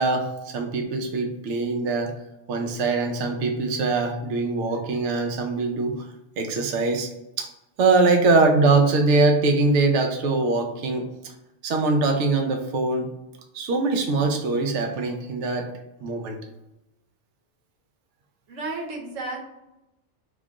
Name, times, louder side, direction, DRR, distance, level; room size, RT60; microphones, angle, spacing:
voice 1, 0.0-2.2 2.5-5.9 6.4-7.1 7.4-7.5 7.8-11.1 11.6-13.1 13.5-15.7 16.0-16.4, right 3 dB, 70° right, 4 dB, 0.9 m, -22 dB
voice 2, 18.5-19.4, right 2 dB, 85° right, 0 dB, 1.2 m, -32 dB
3.5 x 2.4 x 3.9 m, 0.93 s
omnidirectional pair, 1.3 m